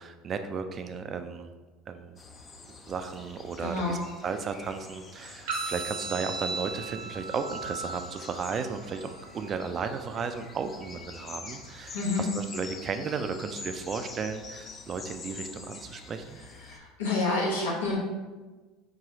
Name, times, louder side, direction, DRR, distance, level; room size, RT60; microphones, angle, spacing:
voice 1, 0.0-1.5 1.9-2.2 2.7-4.0 4.2-16.4, right 5 dB, 40° right, 8 dB, 0.3 m, -34 dB
sound 1, 2.2-16.8, left 4 dB, 35° left, 0.5 m, -46 dB
voice 2, 3.6-4.0 11.9-12.2 16.6-18.0, left 3 dB, 80° left, -5 dB, 0.7 m, -28 dB
sound 2, 5.5-13.5, right 3 dB, 70° right, 0.7 m, -40 dB
3.9 x 2.9 x 2.6 m, 1.2 s
hypercardioid pair, 70°, 0 cm